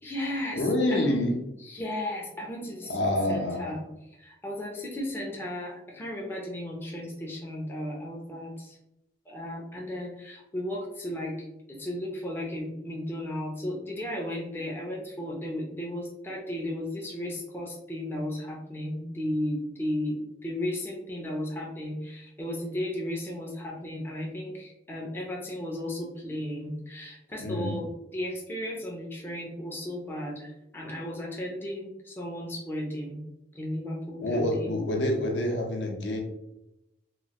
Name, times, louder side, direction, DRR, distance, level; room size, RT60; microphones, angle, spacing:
voice 1, 0.0-1.2 1.6-3.8 4.1-8.8 9.3-11.4 11.7-33.2 33.5-34.7, left 1 dB, 10° left, -2 dB, 0.4 m, -35 dB
voice 2, 0.5-1.3 2.9-3.7 27.4-27.8 34.2-36.2, left 1 dB, 70° left, 1 dB, 0.6 m, -27 dB
2.9 x 2.4 x 2.8 m, 0.89 s
head